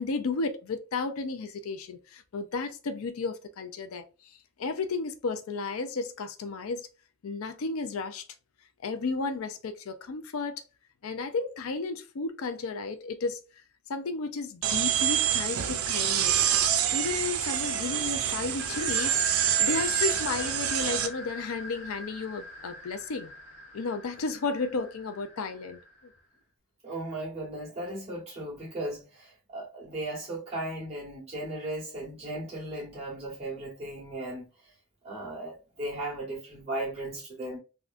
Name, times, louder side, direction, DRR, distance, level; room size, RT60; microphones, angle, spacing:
voice 1, 0.0-4.0 4.6-6.9 7.2-8.2 8.8-10.6 11.0-13.4 13.9-16.4 16.9-23.3 23.7-25.8, left 4 dB, 80° left, 0.5 m, -33 dB
sound 1, 14.6-21.1, right 10 dB, 90° right, 0.5 m, -27 dB
sound 2, 18.6-26.1, left 1 dB, 55° left, 1.1 m, -41 dB
voice 2, 26.8-34.5 35.0-37.6, right 1 dB, 30° right, 1.8 m, -36 dB
3.6 x 2.2 x 2.5 m
head